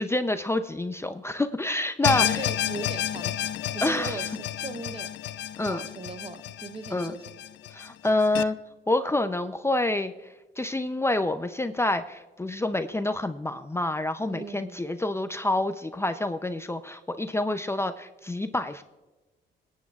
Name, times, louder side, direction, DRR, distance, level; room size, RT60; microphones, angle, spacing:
voice 1, 0.0-2.4 3.8-4.2 5.6-5.8 6.9-7.1 7.7-8.6 8.9-10.1 10.6-18.8, left 2 dB, 15° left, 9 dB, 0.5 m, -27 dB
sound 1, 2.0-8.4, left 11 dB, 65° left, 0.5 m, -30 dB
voice 2, 2.0-5.1 5.7-7.2 14.3-14.8, right 4 dB, 30° right, 11 dB, 0.7 m, -39 dB
23.5 x 9.3 x 2.4 m, 1.1 s
cardioid pair, 90°, 20 cm